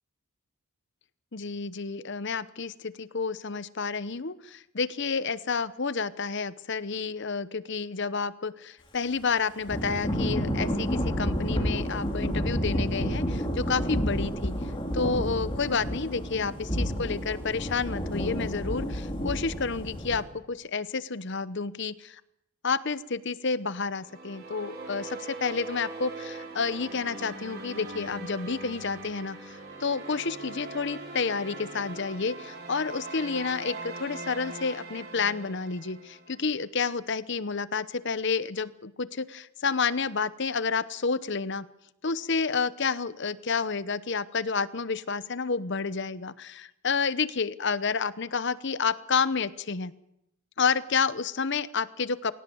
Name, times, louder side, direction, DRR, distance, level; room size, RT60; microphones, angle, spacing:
voice 1, 1.3-14.6 14.9-22.2 22.6-41.7 42.0-49.9 50.6-52.3, left 5 dB, 50° left, 16 dB, 0.8 m, -30 dB
Thunder / Rain, 9.7-20.2, equal, 20° left, 3.2 m, -30 dB
sound 1, 24.0-36.4, right 2 dB, 45° right, 4.9 m, -41 dB
22.0 x 18.0 x 7.8 m, 0.80 s
head